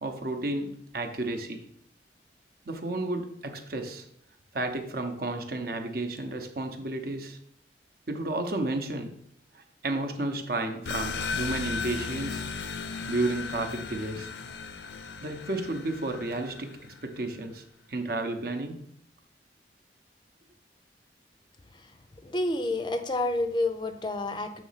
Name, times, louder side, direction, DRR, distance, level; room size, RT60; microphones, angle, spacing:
voice 1, 0.0-1.6 2.7-4.1 4.5-7.4 8.1-9.2 9.5-12.4 13.1-14.3 15.2-17.6 17.9-18.8, right 2 dB, 55° right, 6 dB, 0.8 m, -32 dB
sound 1, 10.9-17.1, left 5 dB, 75° left, 0.5 m, -36 dB
voice 2, 22.2-24.6, left 2 dB, 25° left, 8 dB, 0.5 m, -29 dB
6.9 x 3.1 x 5.7 m, 0.71 s
head